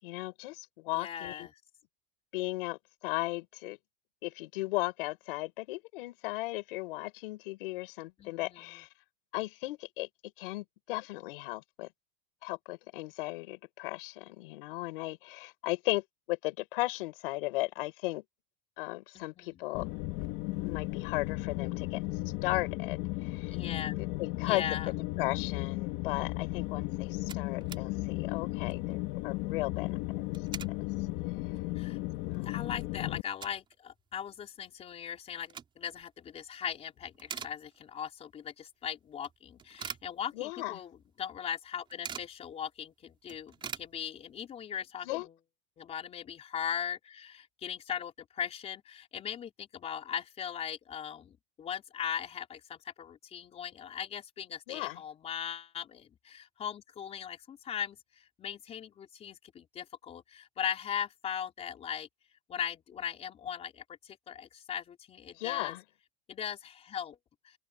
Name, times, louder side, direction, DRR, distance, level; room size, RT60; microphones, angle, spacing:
voice 1, 0.0-1.5 2.3-3.8 4.2-8.9 9.3-10.1 10.4-11.9 12.4-18.2 18.8-19.8 20.6-22.0 22.4-23.6 24.0-24.6 25.2-30.0 32.3-32.6 40.3-40.8 45.0-45.3 54.7-55.0 65.3-65.8, left 21 dB, 60° left, 6.5 m, -36 dB
voice 2, 0.9-1.5 8.2-8.8 19.1-19.7 23.5-24.0 24.4-24.9 31.7-32.0 32.5-45.3 45.8-62.1 62.5-65.7 66.3-67.2 67.4-67.5, left 8 dB, 20° left, 4.1 m, -39 dB
sound 1, 19.7-33.2, left 19 dB, 40° left, 2.4 m, -35 dB
sound 2, 26.7-26.8 27.0-27.9 28.3-28.4 28.6-28.9 30.1-30.8 31.3-31.4 31.9-32.0 32.3-33.8 34.1-34.2 35.2-36.0 36.5-36.8 37.1-38.1 38.4-38.5 39.2-40.7 41.0-41.1 41.4-42.4 42.8-42.9 43.1-44.5, right 7 dB, 15° right, 4.3 m, -44 dB
open air
supercardioid pair, 170°, 31 cm